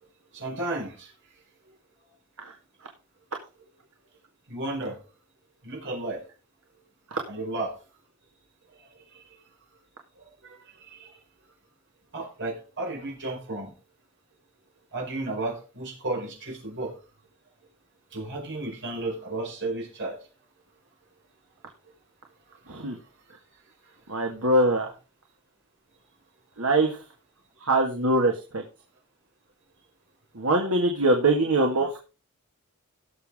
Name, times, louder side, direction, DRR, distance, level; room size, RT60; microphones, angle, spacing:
voice 1, 0.3-1.1 4.5-5.0 5.6-6.2 7.3-7.7 10.4-10.6 10.9-11.1 12.1-13.7 14.9-16.9 18.1-20.2, right 2 dB, 55° right, 0 dB, 5.1 m, -33 dB
voice 2, 24.1-24.9 26.6-27.0 27.6-28.6 30.4-32.0, right 2 dB, 70° right, 1 dB, 2.0 m, -23 dB
17.5 x 7.2 x 3.7 m, 0.32 s
head